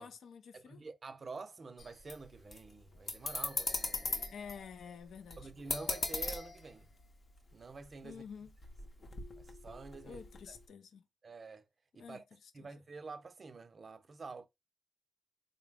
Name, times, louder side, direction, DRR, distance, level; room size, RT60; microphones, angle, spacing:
voice 1, 0.0-0.8 4.1-5.5 8.0-8.5 10.0-11.0 12.0-12.7, left 6 dB, 85° left, 0.5 m, -50 dB
voice 2, 0.5-4.3 5.4-6.9 7.5-8.2 9.4-10.2 10.5-10.6 11.2-11.6 11.9-12.2 12.5-14.5, right 4 dB, 50° right, 0.5 m, -48 dB
sound 1, 1.8-7.6 7.9-8.1 8.5-10.6, left 3 dB, 55° left, 0.8 m, -39 dB
3.9 x 2.0 x 3.3 m
cardioid pair, 70°, 0 cm